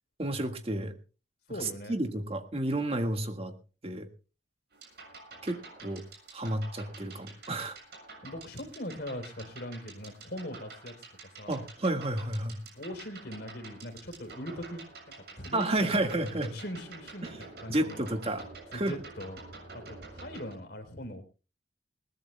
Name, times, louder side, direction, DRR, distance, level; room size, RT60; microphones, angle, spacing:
voice 1, 0.2-0.9 1.6-3.5 3.8-4.1 5.4-6.0 6.3-7.8 11.5-12.6 15.5-16.5 17.2-18.5 18.7-18.9, right 1 dB, 35° right, 6 dB, 1.7 m, -31 dB
voice 2, 1.5-1.9 8.2-11.0 11.4-11.7 12.7-14.8 15.4-18.0 18.7-19.4 19.7-21.2, left 1 dB, 60° left, 6 dB, 3.7 m, -41 dB
sound 1, 4.7-20.5, right 3 dB, 60° right, 7.0 m, -49 dB
21.5 x 19.5 x 2.2 m, 0.34 s
head